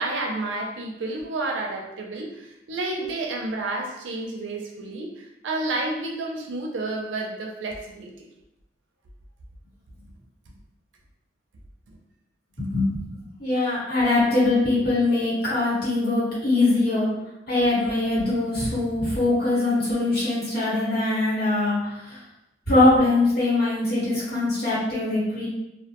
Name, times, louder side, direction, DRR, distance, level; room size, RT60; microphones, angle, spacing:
voice 1, 0.0-8.3, right 2 dB, 80° right, 1 dB, 0.5 m, -30 dB
voice 2, 12.6-13.1 13.4-17.1 17.5-22.2 22.7-25.5, left 2 dB, 55° left, -10 dB, 1.4 m, -22 dB
2.4 x 2.1 x 2.9 m, 0.91 s
head